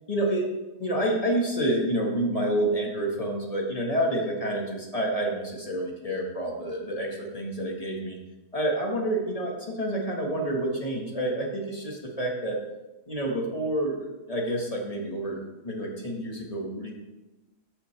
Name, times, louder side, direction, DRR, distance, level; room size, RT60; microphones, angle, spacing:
voice 1, 0.1-0.5 0.8-8.2 8.5-12.6 13.1-14.0 14.3-16.9, right 1 dB, 25° left, -1 dB, 1.6 m, -28 dB
13.5 x 5.7 x 3.3 m, 1.1 s
omnidirectional pair, 1.7 m